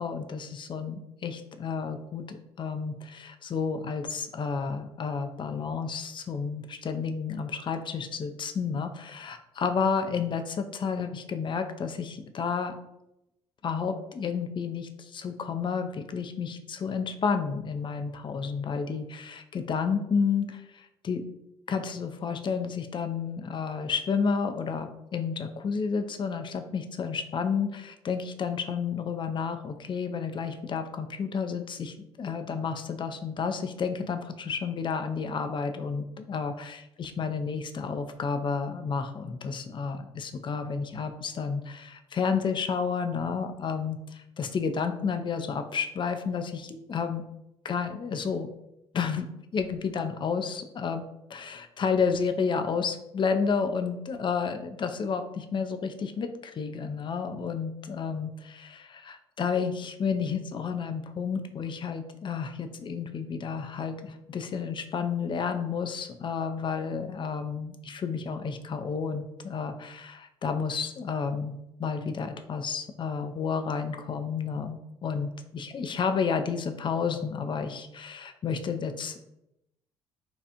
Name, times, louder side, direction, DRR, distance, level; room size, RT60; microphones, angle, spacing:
voice 1, 0.0-12.8 13.6-21.2 21.7-47.2 47.6-48.5 48.9-49.3 49.5-51.0 51.3-79.2, left 5 dB, 35° left, 7 dB, 0.5 m, -31 dB
4.2 x 2.4 x 2.9 m, 0.86 s
hypercardioid pair, 55°, 14 cm